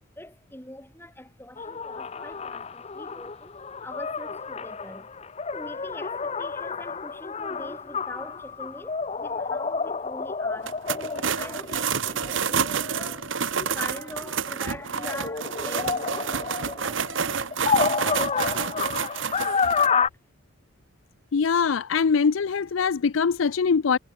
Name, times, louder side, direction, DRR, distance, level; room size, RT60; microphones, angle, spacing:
voice 1, 0.0-3.6 3.8-5.1 5.5-13.3 13.7-19.2, left 1 dB, 10° left, 7.9 m, -43 dB
sound 1, 1.6-14.3 14.8-20.1, left 5 dB, 30° left, 0.7 m, -30 dB
sound 2, 10.6-19.9, right 6 dB, 75° right, 1.2 m, -29 dB
voice 2, 21.3-24.0, left 5 dB, 90° left, 0.5 m, -22 dB
head